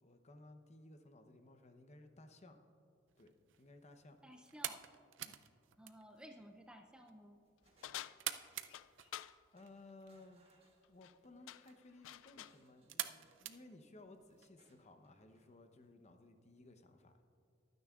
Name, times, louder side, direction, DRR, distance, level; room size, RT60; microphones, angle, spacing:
voice 1, 0.0-2.6 3.2-4.2 5.2-5.4 9.5-10.4 10.9-17.1, left 2 dB, 35° left, 7 dB, 0.8 m, -59 dB
sound 1, 3.1-14.5, right 12 dB, 70° right, 0.5 m, -50 dB
voice 2, 4.2-4.8 5.8-7.4, equal, 5° right, 4 dB, 0.5 m, -56 dB
sound 2, 6.4-6.8 7.2-8.3 9.1-9.3 9.5-11.4 12.3-13.7 14.6-15.6, right 2 dB, 30° right, 1.5 m, -74 dB
sound 3, 7.8-9.4 10.8-11.1 11.5-12.6, left 13 dB, 80° left, 0.3 m, -50 dB
23.0 x 9.4 x 2.4 m, 2.5 s
head